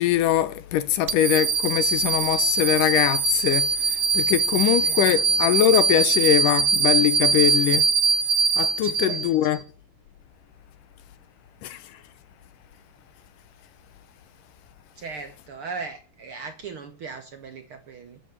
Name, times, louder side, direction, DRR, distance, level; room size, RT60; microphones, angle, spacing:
voice 1, 0.0-7.9 8.6-9.6 11.6-11.9, left 11 dB, 80° left, 2.4 m, -22 dB
sound 1, 1.1-9.6, right 5 dB, 85° right, 1.0 m, -22 dB
voice 2, 4.5-5.2 8.8-9.2 15.0-18.2, right 4 dB, 55° right, 1.6 m, -38 dB
10.0 x 8.0 x 9.4 m
omnidirectional pair, 3.8 m